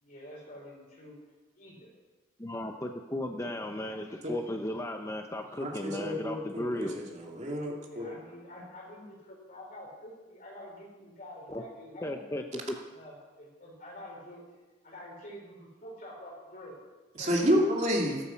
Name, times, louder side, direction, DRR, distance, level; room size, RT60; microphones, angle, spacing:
voice 1, 0.0-1.2 1.5-1.9 7.7-12.3 12.9-14.4 14.8-16.8 17.2-17.6, left 1 dB, 45° left, -3 dB, 4.2 m, -47 dB
voice 2, 2.4-7.0 11.5-11.6 12.0-12.7, left 1 dB, 15° left, 4 dB, 0.8 m, -35 dB
voice 3, 5.6-8.1 17.2-18.2, equal, 35° right, -1 dB, 2.6 m, -29 dB
15.0 x 14.0 x 5.8 m, 1.2 s
head